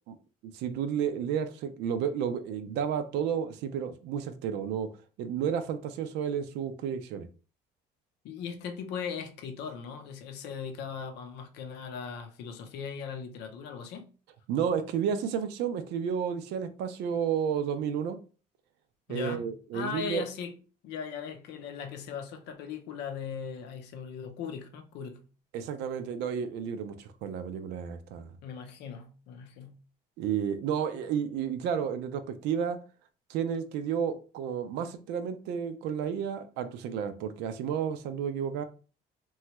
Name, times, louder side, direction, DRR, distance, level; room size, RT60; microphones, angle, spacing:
voice 1, 0.5-4.9 5.2-7.3 14.5-18.2 19.1-20.2 25.5-28.3 30.2-32.8 33.3-38.6, right 8 dB, 85° right, 0.4 m, -31 dB
voice 2, 8.2-14.0 19.1-20.5 20.8-25.3 28.4-29.8, left 6 dB, 85° left, 0.6 m, -39 dB
3.1 x 2.3 x 2.9 m
cardioid pair, 110°, 17 cm